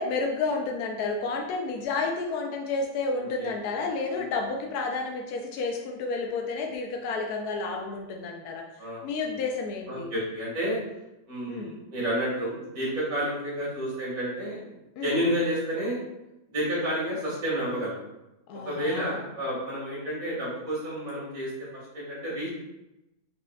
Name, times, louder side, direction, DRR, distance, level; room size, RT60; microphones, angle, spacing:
voice 1, 0.0-8.6 9.0-10.1 11.5-11.7 15.0-15.2 18.5-19.2, left 3 dB, 90° left, 2 dB, 1.1 m, -31 dB
voice 2, 3.2-3.5 4.1-4.2 8.8-9.1 9.9-10.8 11.3-14.7 15.0-16.0 16.5-18.0 18.7-22.5, equal, 65° right, -6 dB, 2.3 m, -30 dB
4.8 x 4.4 x 2.3 m, 0.94 s
omnidirectional pair, 1.6 m